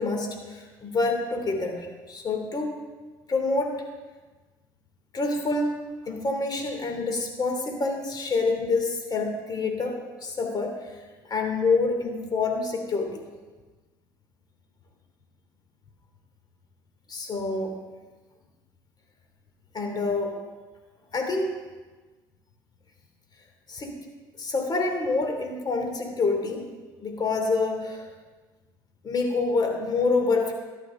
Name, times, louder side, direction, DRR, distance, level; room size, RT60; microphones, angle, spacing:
voice 1, 0.0-2.8 3.3-3.7 5.1-5.7 6.0-11.0 11.2-13.2 17.1-17.7 19.7-20.4 21.1-21.5 23.7-23.9 24.4-26.7 27.0-28.1 29.0-30.5, left 3 dB, 40° left, 3 dB, 3.0 m, -27 dB
14.0 x 11.5 x 3.9 m, 1.3 s
hypercardioid pair, 65°, 10 cm